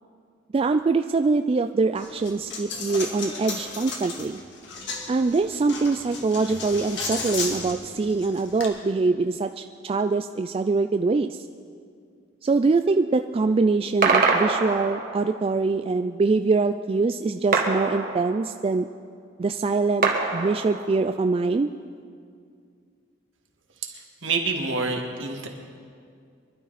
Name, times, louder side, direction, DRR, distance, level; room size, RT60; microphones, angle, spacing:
voice 1, 0.5-4.4 5.1-11.5 12.4-18.9 19.4-21.7, right 3 dB, 30° right, 8 dB, 0.3 m, -23 dB
Coin (dropping), 2.0-8.7, left 3 dB, 60° left, 2.0 m, -34 dB
sound 1, 14.0-15.4 17.5-18.7 20.0-21.2, right 4 dB, 45° right, 1.5 m, -24 dB
voice 2, 24.2-25.5, right 3 dB, 70° right, 2 dB, 1.9 m, -27 dB
24.0 x 12.0 x 4.1 m, 2.2 s
head